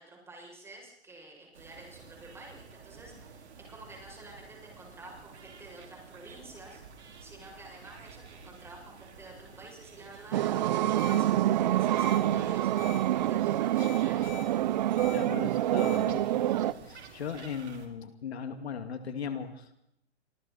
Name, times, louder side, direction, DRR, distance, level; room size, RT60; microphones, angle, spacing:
voice 1, 0.0-6.8 7.2-12.7 13.1-14.3, right 2 dB, 5° right, -1 dB, 7.0 m, -50 dB
sound 1, 1.5-17.9, right 5 dB, 75° right, 4.8 m, -51 dB
sound 2, 10.3-16.7, right 13 dB, 40° right, 0.8 m, -26 dB
sound 3, 11.0-11.2 12.0-12.2 12.8-13.0 13.8-14.4 15.0-15.2 15.8-16.0, left 6 dB, 30° left, 7.6 m, -42 dB
voice 2, 15.1-19.8, left 6 dB, 65° left, 8 dB, 2.5 m, -38 dB
29.0 x 26.0 x 4.3 m, 0.78 s
hypercardioid pair, 150°, 34 cm